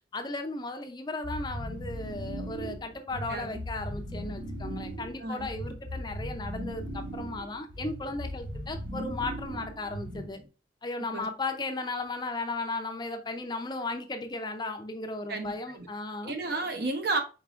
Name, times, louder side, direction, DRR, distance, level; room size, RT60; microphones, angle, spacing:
voice 1, 0.1-10.4 10.8-16.3, left 2 dB, 25° left, 0.5 m, -36 dB
sound 1, 1.2-10.5, equal, 25° right, 0.8 m, -38 dB
voice 2, 3.3-3.6 5.2-5.5 11.0-11.2 15.3-15.9 16.2-17.2, right 3 dB, 55° right, 0.8 m, -32 dB
4.7 x 4.0 x 2.4 m
head